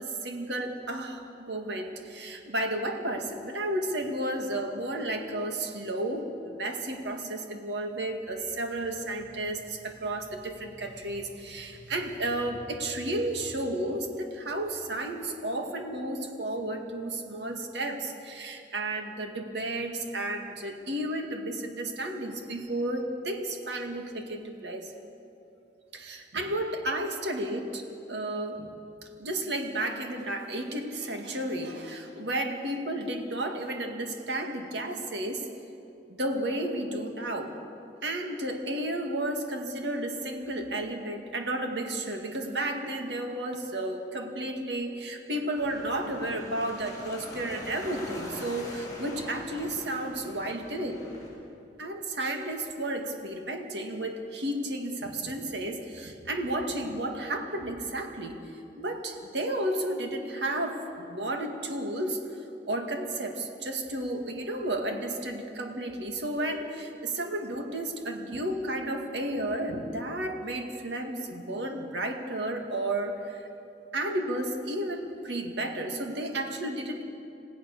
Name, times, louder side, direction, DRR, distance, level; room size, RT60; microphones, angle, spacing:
voice 1, 0.0-24.9 25.9-28.7 29.2-35.5 36.1-37.5 38.0-51.0 51.8-58.4 58.8-62.2 62.7-73.4 73.9-77.0, right 1 dB, 70° right, 3 dB, 2.3 m, -32 dB
sound 1, 45.6-51.3, equal, 20° left, 7.2 m, -43 dB
27.0 x 16.5 x 6.8 m, 2.7 s
head